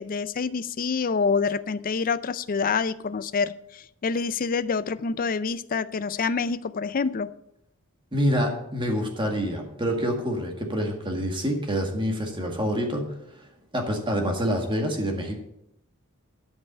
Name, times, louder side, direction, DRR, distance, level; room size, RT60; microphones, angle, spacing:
voice 1, 0.0-7.3, left 5 dB, 40° left, 16 dB, 0.4 m, -27 dB
voice 2, 8.1-13.1 13.7-15.4, equal, 20° right, 2 dB, 1.8 m, -26 dB
12.0 x 5.4 x 7.2 m, 0.80 s
head